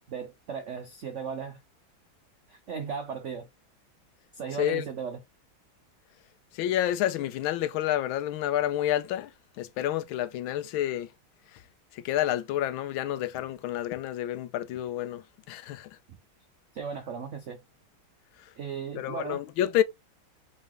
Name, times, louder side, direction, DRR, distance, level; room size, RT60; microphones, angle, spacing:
voice 1, 0.1-1.6 2.5-3.5 4.3-5.2 16.7-17.6 18.6-19.4, right 6 dB, 90° right, 0.6 m, -36 dB
voice 2, 6.5-11.1 11.5-11.6 11.9-15.9 18.9-19.8, left 12 dB, 80° left, 1.4 m, -29 dB
4.0 x 3.7 x 3.2 m
omnidirectional pair, 2.2 m